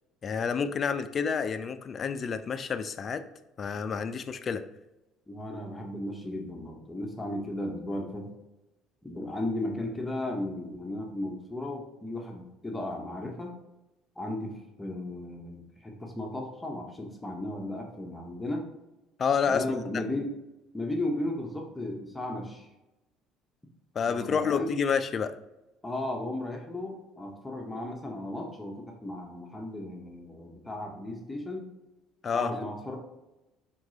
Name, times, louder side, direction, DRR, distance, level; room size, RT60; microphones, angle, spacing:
voice 1, 0.2-3.3 3.6-4.7 19.2-19.6 24.0-25.4 32.2-32.5, left 6 dB, 45° left, 11 dB, 0.4 m, -29 dB
voice 2, 5.3-8.3 9.0-13.5 14.2-18.7 19.5-20.3 20.7-22.7 24.1-24.7 25.8-31.7 32.3-33.0, left 1 dB, 15° left, 1 dB, 0.9 m, -35 dB
4.5 x 3.8 x 2.7 m, 0.97 s
hypercardioid pair, 60°, 0 cm